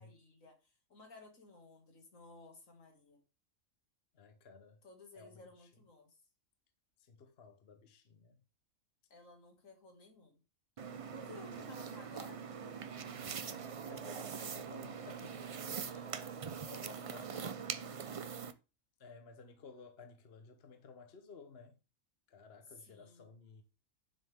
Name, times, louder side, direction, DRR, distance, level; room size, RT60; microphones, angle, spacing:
voice 1, 0.0-3.2 4.8-6.2 9.1-10.4 11.1-12.4 15.8-16.2 16.6-18.1 22.8-23.3, left 3 dB, 75° left, 2.6 m, -56 dB
voice 2, 4.1-4.8 5.1-5.7 7.0-8.4 13.1-15.5 16.1-16.4 17.1-17.4 19.0-21.8 22.3-23.6, left 5 dB, 50° left, 1.2 m, -56 dB
sound 1, 10.8-18.5, right 6 dB, 60° right, 0.3 m, -43 dB
9.7 x 7.3 x 3.6 m
omnidirectional pair, 1.4 m